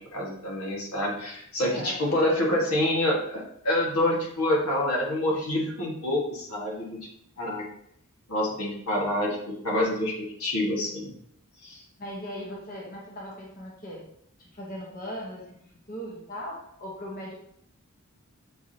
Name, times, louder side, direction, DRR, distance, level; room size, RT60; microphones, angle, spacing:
voice 1, 0.0-7.0 7.4-7.6 8.3-11.2 11.6-11.8, left 1 dB, 80° left, -2 dB, 1.7 m, -27 dB
voice 2, 1.6-2.2 6.8-6.9 12.0-14.1 14.4-15.6 15.9-17.4, equal, 40° left, -3 dB, 1.0 m, -39 dB
7.2 x 4.7 x 2.8 m, 0.70 s
head